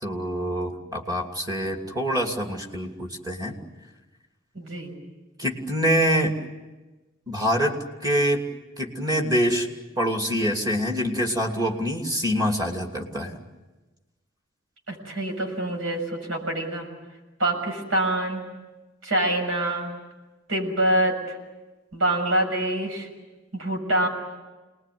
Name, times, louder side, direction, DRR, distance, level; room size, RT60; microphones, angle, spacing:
voice 1, 0.0-3.6 5.4-6.4 7.3-8.5 8.8-9.7 10.0-13.4, equal, 20° right, 2 dB, 2.9 m, -25 dB
voice 2, 4.5-4.9 14.9-16.9 17.4-18.4 19.0-19.9 20.5-21.4 21.9-23.1 23.5-24.1, right 1 dB, 75° right, 2 dB, 6.6 m, -25 dB
27.5 x 20.5 x 9.5 m, 1.2 s
head